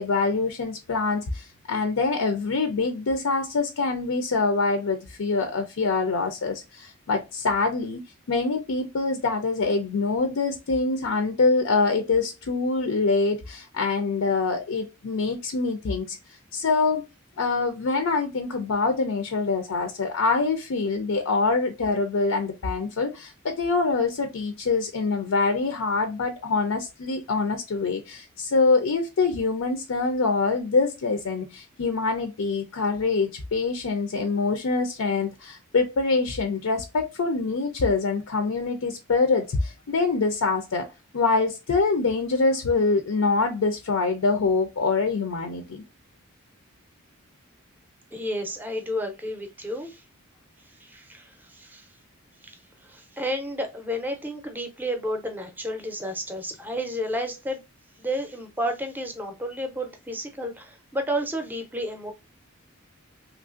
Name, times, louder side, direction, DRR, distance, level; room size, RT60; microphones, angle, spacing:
voice 1, 0.0-8.0 8.3-16.2 16.5-17.0 17.4-40.8 41.1-45.8, left 3 dB, 75° left, 0.5 m, -25 dB
voice 2, 48.1-50.0 50.8-51.9 52.4-52.6 52.8-57.6 58.0-62.1, equal, 10° right, 0.5 m, -31 dB
3.1 x 2.4 x 2.4 m
head